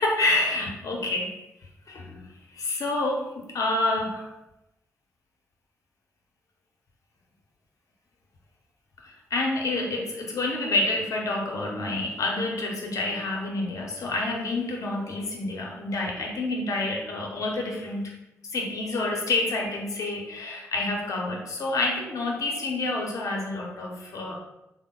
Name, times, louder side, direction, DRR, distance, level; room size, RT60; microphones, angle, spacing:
voice 1, 0.0-1.4 1.9-4.3 9.0-18.1 18.5-24.3, left 2 dB, 70° left, 0 dB, 0.8 m, -28 dB
3.5 x 2.1 x 3.7 m, 0.90 s
supercardioid pair, 45°, 6 cm